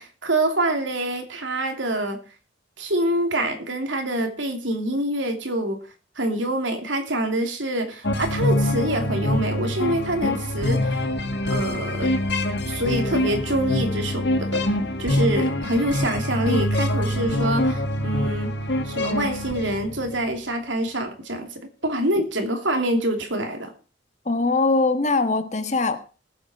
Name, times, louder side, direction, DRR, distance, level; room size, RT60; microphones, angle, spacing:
voice 1, 0.0-2.2 2.8-5.8 6.2-11.1 11.4-12.1 12.7-14.7 15.0-18.5 18.8-21.5 21.8-23.7, right 1 dB, 80° right, 5 dB, 2.9 m, -26 dB
sound 1, 8.0-20.3, left 1 dB, 60° left, 1.8 m, -25 dB
voice 2, 24.2-26.0, left 3 dB, 35° left, 10 dB, 1.3 m, -21 dB
19.5 x 7.9 x 4.3 m, 0.36 s
head